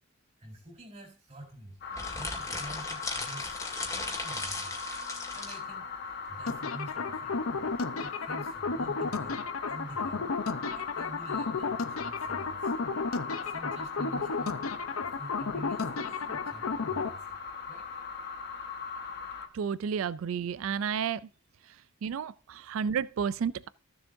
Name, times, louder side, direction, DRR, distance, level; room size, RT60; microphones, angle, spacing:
voice 1, 0.4-3.6 3.9-4.8 5.1-7.7 8.0-10.2 10.5-12.7 13.4-17.4 17.7-17.9, right 1 dB, 30° right, 4.0 m, -47 dB
sound 1, 1.8-19.5, left 5 dB, 50° left, 1.3 m, -40 dB
sound 2, 1.9-5.6, left 3 dB, 15° left, 1.9 m, -37 dB
sound 3, 6.5-17.1, left 4 dB, 85° left, 0.8 m, -33 dB
voice 2, 19.5-21.3 21.7-21.8 22.0-23.7, right 7 dB, 70° right, 0.3 m, -31 dB
14.5 x 7.1 x 2.6 m
head